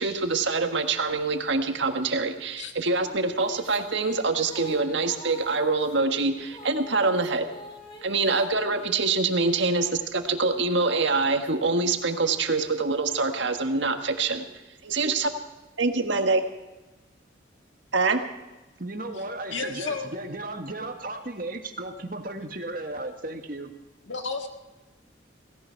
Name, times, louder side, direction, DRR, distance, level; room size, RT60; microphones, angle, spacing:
voice 1, 0.0-7.5 8.0-14.4 14.8-15.3 15.8-16.4 17.9-18.2, right 3 dB, 70° right, 6 dB, 1.6 m, -25 dB
sound 1, 2.6-9.6 10.2-13.9, equal, 25° left, 2.9 m, -47 dB
voice 2, 18.8-23.7, right 2 dB, 45° right, 6 dB, 1.6 m, -35 dB
voice 3, 19.5-20.1 24.1-24.5, left 4 dB, 75° left, 5 dB, 1.8 m, -32 dB
17.5 x 17.0 x 4.6 m, 1.1 s
head